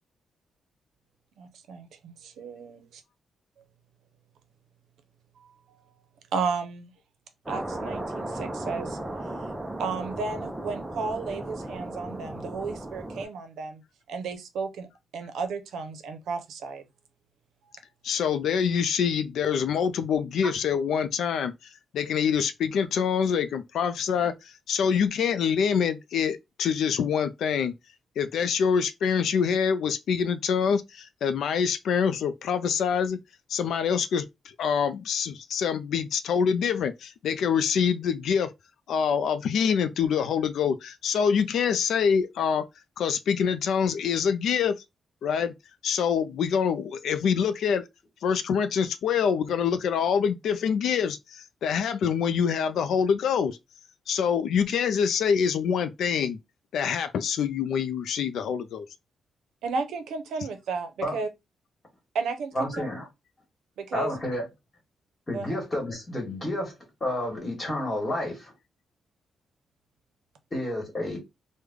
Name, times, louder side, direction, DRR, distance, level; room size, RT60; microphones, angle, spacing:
voice 1, 1.4-3.0 6.3-6.9 7.5-9.0 9.8-13.8 14.1-14.9 15.1-16.8 59.6-61.3 62.1-62.7 63.8-64.1 65.3-65.5, right 4 dB, 85° right, 0.6 m, -33 dB
sound 1, 7.5-13.3, right 1 dB, 10° right, 0.4 m, -35 dB
voice 2, 18.0-21.5 21.9-27.7 28.2-33.2 33.5-34.2 34.6-38.5 38.9-42.6 43.0-44.8 45.2-45.5 45.8-47.8 48.2-53.6 54.1-56.4 56.7-58.9, left 7 dB, 70° left, 0.3 m, -25 dB
voice 3, 62.5-63.1 63.9-64.5 65.3-66.7 67.0-68.5 70.5-71.2, left 1 dB, 20° left, 1.3 m, -30 dB
3.2 x 2.1 x 3.5 m
wide cardioid pair, 175°, 0 cm